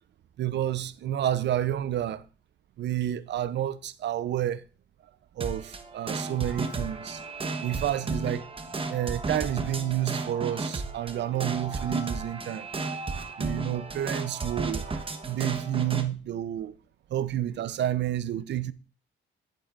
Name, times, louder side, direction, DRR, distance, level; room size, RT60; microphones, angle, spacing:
voice 1, 0.4-2.2 2.8-4.6 5.4-7.2 7.6-8.4 8.9-12.7 13.4-16.8 17.1-18.7, right 11 dB, 60° right, 0.6 m, -30 dB
sound 1, 5.4-16.1, right 3 dB, 25° right, 1.1 m, -34 dB
10.5 x 8.5 x 2.5 m
cardioid pair, 90°, 20 cm